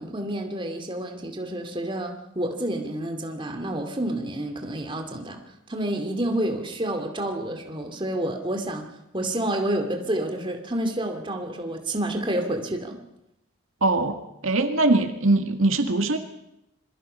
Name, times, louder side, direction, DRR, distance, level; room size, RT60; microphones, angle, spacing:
voice 1, 0.0-5.4 5.7-8.9 9.1-13.0, right 1 dB, 25° right, 4 dB, 2.4 m, -29 dB
voice 2, 13.8-14.2 14.4-16.2, right 2 dB, 85° right, 6 dB, 2.1 m, -21 dB
26.5 x 23.0 x 5.6 m, 0.84 s
head